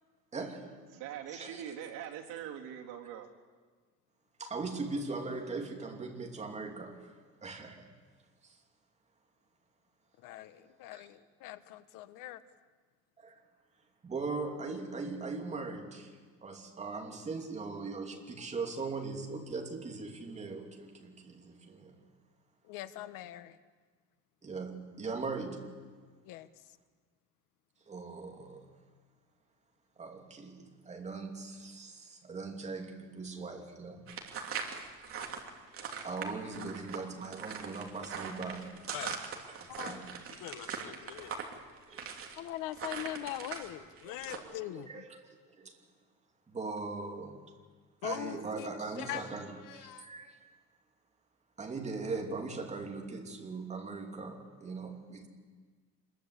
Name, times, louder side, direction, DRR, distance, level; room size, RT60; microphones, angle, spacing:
voice 1, 0.3-1.0 1.3-1.6 4.4-7.1 7.4-7.9 10.9-11.0 13.2-13.4 14.0-21.9 24.4-25.9 27.9-28.7 30.0-34.0 36.0-38.8 39.6-40.0 41.9-42.0 44.0-44.5 44.9-45.1 45.5-45.7 46.5-47.5 48.0-50.4 51.6-55.3, right 4 dB, 20° right, 2 dB, 3.0 m, -40 dB
voice 2, 0.9-3.3, right 9 dB, 90° right, 0 dB, 3.5 m, -42 dB
voice 3, 10.2-12.4 22.7-23.6 26.2-26.5 36.5-37.0 38.9-39.1 39.7-40.0 40.4-41.3 42.4-45.0 48.0-49.3 49.7-50.1, left 13 dB, 80° left, 11 dB, 1.4 m, -42 dB
sound 1, 34.1-43.7 44.0-44.4, right 6 dB, 40° right, 3.0 m, -41 dB
26.0 x 22.0 x 8.4 m, 1.5 s
cardioid pair, 165°, 32 cm